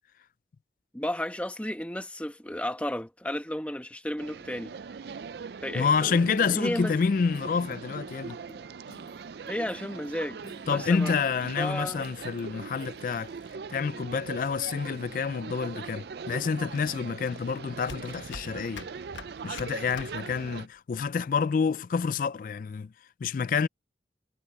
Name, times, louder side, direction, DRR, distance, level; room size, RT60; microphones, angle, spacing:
voice 1, 0.9-4.7 5.6-7.0 9.5-10.4 10.7-11.2 11.6-12.0, left 1 dB, 5° left, 1.1 m, -33 dB
sound 1, 4.2-20.7, right 5 dB, 65° right, 0.4 m, -41 dB
voice 2, 5.7-8.4 10.7-13.3 13.7-18.9 19.4-22.9 23.2-23.7, left 5 dB, 50° left, 0.3 m, -28 dB
sound 2, 7.3-13.6, equal, 25° left, 6.7 m, -52 dB
sound 3, 14.8-20.8, left 4 dB, 90° left, 1.1 m, -46 dB
head